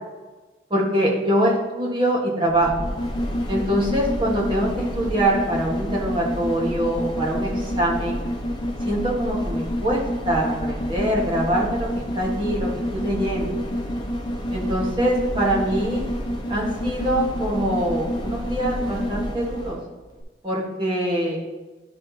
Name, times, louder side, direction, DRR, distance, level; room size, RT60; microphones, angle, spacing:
voice 1, 0.7-2.7 3.5-8.2 8.8-11.9 12.1-13.6 14.5-16.1 16.5-19.8 20.4-21.4, right 1 dB, 25° right, -4 dB, 1.4 m, -24 dB
sound 1, 2.5-19.8 20.2-20.3, equal, 25° left, 0.8 m, -28 dB
10.5 x 4.3 x 2.8 m, 1.3 s
head